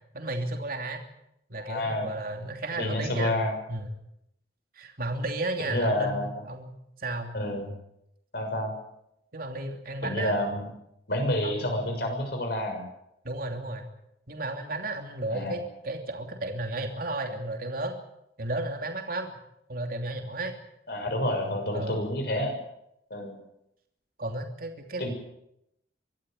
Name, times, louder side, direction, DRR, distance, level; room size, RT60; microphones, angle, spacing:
voice 1, 0.1-1.0 1.5-3.4 3.7-3.9 4.7-6.7 7.0-7.3 9.3-10.3 11.4-12.2 13.2-13.9 14.3-18.0 18.4-19.4 19.7-20.5 21.7-22.0 24.2-25.1, right 2 dB, 50° right, 4 dB, 3.0 m, -33 dB
voice 2, 1.6-2.1 2.7-3.5 5.7-6.3 7.3-7.7 8.3-8.7 10.0-10.7 11.1-12.8 15.3-15.5 20.9-22.5 23.1-23.4 25.0-25.1, left 1 dB, 60° left, 4 dB, 6.7 m, -29 dB
24.0 x 14.0 x 9.4 m, 0.82 s
head